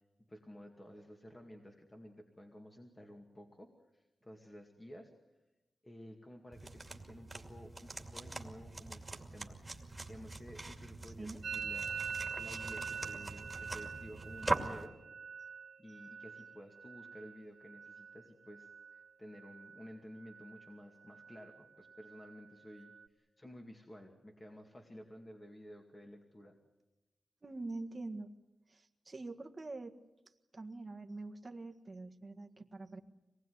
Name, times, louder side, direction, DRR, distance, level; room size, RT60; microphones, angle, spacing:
voice 1, 0.3-5.1 5.8-15.0 15.8-26.6, equal, 20° left, 2 dB, 2.3 m, -53 dB
sound 1, 6.5-14.9, right 2 dB, 15° right, 2.5 m, -42 dB
Musical instrument, 11.4-19.1 19.3-19.9 20.2-20.8 21.0-23.1, right 6 dB, 80° right, 2.2 m, -45 dB
voice 2, 27.4-28.3 28.7-29.9 30.5-33.0, right 2 dB, 30° right, 5 dB, 1.7 m, -45 dB
26.0 x 19.5 x 9.6 m, 0.99 s
wide cardioid pair, 145°, 0 cm